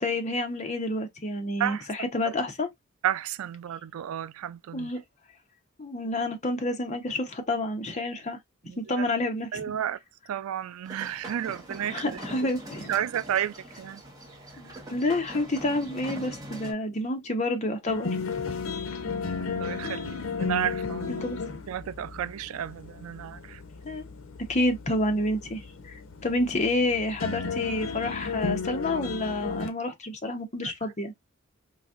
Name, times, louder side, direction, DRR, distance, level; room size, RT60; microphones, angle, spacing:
voice 1, 0.0-2.7 4.7-5.0 5.8-8.4 8.8-9.6 11.9-12.9 14.6-18.1 21.1-21.4 23.8-24.1 24.5-25.9 26.2-31.1, left 1 dB, 35° left, 0.7 m, -29 dB
voice 2, 3.0-4.9 8.6-9.0 9.5-10.0 10.3-12.2 12.9-14.0 14.7-14.8 19.4-21.2 21.7-23.6 30.6-30.9, right 10 dB, 85° right, 0.3 m, -32 dB
sound 1, 10.8-16.7, right 1 dB, 15° right, 1.1 m, -42 dB
sound 2, 17.9-29.7, left 4 dB, 70° left, 0.7 m, -34 dB
3.9 x 2.6 x 2.4 m
head